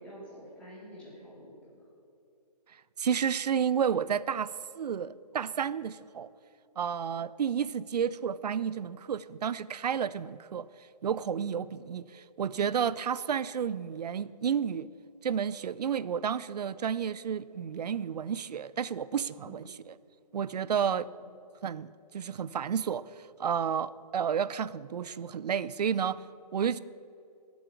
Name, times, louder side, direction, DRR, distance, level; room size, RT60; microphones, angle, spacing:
voice 1, 0.0-1.8 19.4-19.7 20.8-21.3, equal, 5° left, -9 dB, 3.4 m, -49 dB
voice 2, 3.0-6.3 6.8-10.7 11.0-14.9 15.2-19.9 20.3-21.1 21.6-26.2 26.5-26.8, right 7 dB, 70° right, 18 dB, 0.5 m, -31 dB
17.5 x 8.0 x 4.7 m, 2.8 s
hypercardioid pair, 165°, 21 cm